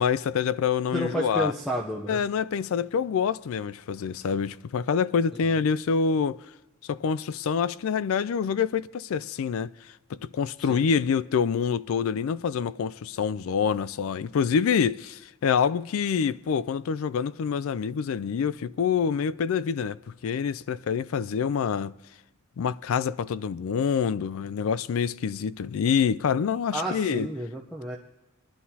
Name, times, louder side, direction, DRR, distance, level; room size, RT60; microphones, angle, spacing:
voice 1, 0.0-1.5 2.1-6.4 6.8-9.7 10.1-21.9 22.6-27.3, left 6 dB, 65° left, 0.3 m, -26 dB
voice 2, 0.9-2.2 10.6-10.9 26.7-28.0, right 1 dB, ahead, 0.7 m, -31 dB
21.5 x 11.5 x 2.8 m
head